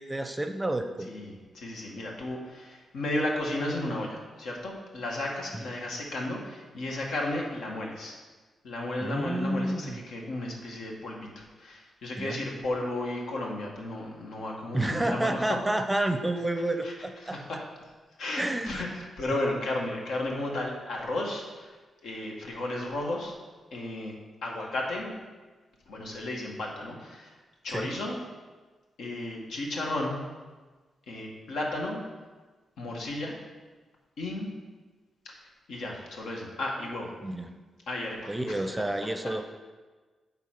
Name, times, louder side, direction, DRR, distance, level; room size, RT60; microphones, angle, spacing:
voice 1, 0.0-1.1 5.5-5.6 9.0-10.0 12.2-12.4 14.7-17.4 18.4-18.8 27.7-27.9 37.2-37.5 38.3-39.4, right 1 dB, 10° right, 7 dB, 0.6 m, -30 dB
voice 2, 1.1-8.2 8.6-15.4 16.8-16.9 17.2-17.6 18.2-21.8 22.0-23.4 23.7-24.1 24.4-25.1 25.9-27.3 27.6-28.2 29.0-30.2 31.1-32.0 32.8-33.4 34.2-34.5 35.2-35.4 35.7-37.1 37.9-38.7, left 1 dB, 85° left, -1 dB, 1.5 m, -34 dB
9.2 x 4.0 x 5.9 m, 1.3 s
cardioid pair, 95°, 0 cm